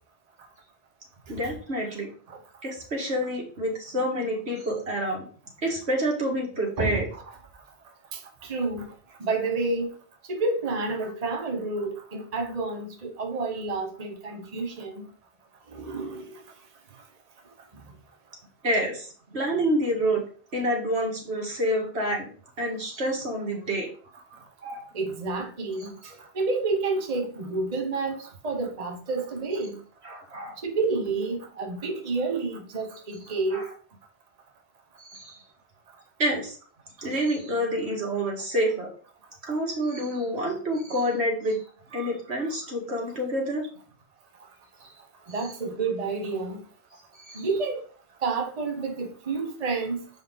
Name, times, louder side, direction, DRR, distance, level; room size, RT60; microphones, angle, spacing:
voice 1, 1.3-2.1 2.6-5.3 5.6-7.1 18.6-20.2 20.5-22.3 22.6-23.9 24.6-24.9 30.0-30.6 33.5-33.6 35.0-35.4 36.2-36.6 37.0-38.9 39.5-41.6 41.9-43.7 47.2-47.5, equal, 80° right, 2.2 m, -28 dB
voice 2, 6.8-7.4 8.1-8.9 9.2-9.9 10.2-15.0 15.7-16.4 17.7-17.8 24.9-29.8 30.6-33.7 37.0-37.1 45.3-46.6 47.3-47.8 48.2-50.1, right 3 dB, 40° right, 1.0 m, -30 dB
6.9 x 5.1 x 3.9 m
omnidirectional pair, 1.1 m